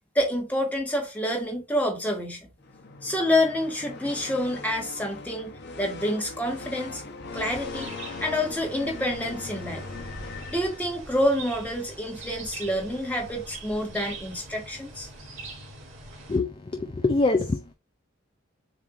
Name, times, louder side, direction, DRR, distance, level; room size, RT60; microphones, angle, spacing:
voice 1, 0.1-2.5 3.0-5.5 5.8-7.0 7.3-7.9 8.2-9.8 10.5-15.1, left 1 dB, 5° left, 1.2 m, -27 dB
sound 1, 2.6-11.2, left 4 dB, 50° left, 0.9 m, -40 dB
sound 2, 7.3-16.4, right 2 dB, 70° right, 1.8 m, -42 dB
voice 2, 16.3-17.7, left 3 dB, 25° left, 0.3 m, -25 dB
7.2 x 2.5 x 2.9 m
head